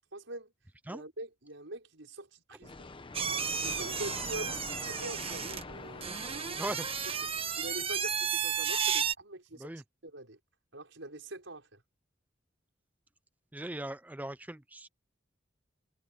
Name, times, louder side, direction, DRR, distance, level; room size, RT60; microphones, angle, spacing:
voice 1, 0.1-0.5 0.9-2.9 3.6-7.1 7.4-9.7 10.0-10.4 10.7-11.8, right 1 dB, 85° right, 5.4 m, -44 dB
sound 1, 2.6-8.3, left 3 dB, 25° left, 0.9 m, -45 dB
sound 2, 3.1-9.1, right 7 dB, 30° right, 1.2 m, -33 dB
voice 2, 6.6-7.2 9.6-9.8 13.5-14.9, right 1 dB, 10° right, 0.5 m, -39 dB
head